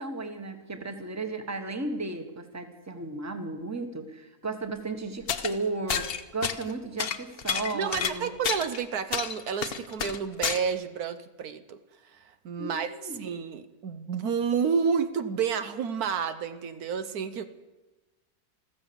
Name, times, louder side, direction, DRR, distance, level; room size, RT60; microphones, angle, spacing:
voice 1, 0.0-8.3 12.6-13.3, right 3 dB, 10° right, 7 dB, 1.3 m, -34 dB
sound 1, 5.3-5.5 5.9-6.7 7.0-8.8 9.1-10.6, left 7 dB, 45° left, 0.9 m, -30 dB
voice 2, 7.7-11.8 12.1-12.9 13.2-17.5, right 6 dB, 75° right, 11 dB, 1.4 m, -30 dB
14.5 x 14.0 x 6.9 m, 1.2 s
omnidirectional pair, 1.6 m